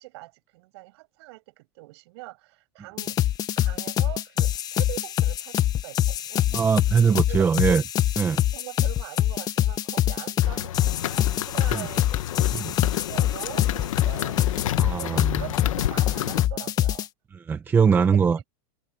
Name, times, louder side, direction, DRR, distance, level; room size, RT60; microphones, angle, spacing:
voice 1, 0.0-3.2 3.6-6.5 7.0-7.5 8.3-14.4 14.8-17.1 18.0-18.4, right 22 dB, 55° right, 6.5 m, -42 dB
sound 1, 3.0-17.1, left 12 dB, 25° left, 1.3 m, -24 dB
voice 2, 6.5-7.8 8.2-8.4 11.7-11.9 12.5-12.7 14.8-15.4 17.5-18.4, right 6 dB, 15° right, 1.2 m, -21 dB
sound 2, 10.4-16.5, left 12 dB, 90° left, 1.3 m, -31 dB
supercardioid pair, 160°, 16 cm